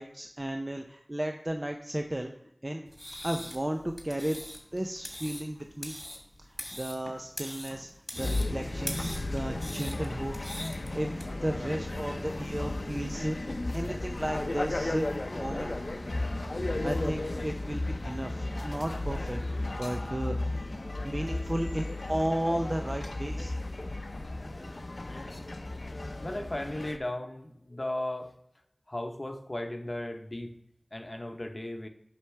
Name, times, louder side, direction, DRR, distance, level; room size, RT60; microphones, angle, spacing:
voice 1, 0.0-2.3 2.6-2.9 3.2-4.4 4.7-5.9 6.5-10.4 10.9-11.1 11.4-13.4 13.7-15.7 16.8-19.4 19.7-20.6 21.0-23.5, right 1 dB, 35° right, 4 dB, 0.5 m, -34 dB
sound 1, 2.9-11.2, left 1 dB, 20° left, 2.0 m, -42 dB
sound 2, 8.2-27.0, left 2 dB, 65° left, 0.6 m, -34 dB
voice 2, 26.2-28.3 28.9-30.5 30.9-31.9, left 1 dB, 45° left, 5 dB, 0.9 m, -36 dB
8.0 x 5.9 x 3.3 m, 0.78 s
wide cardioid pair, 45°, 0 cm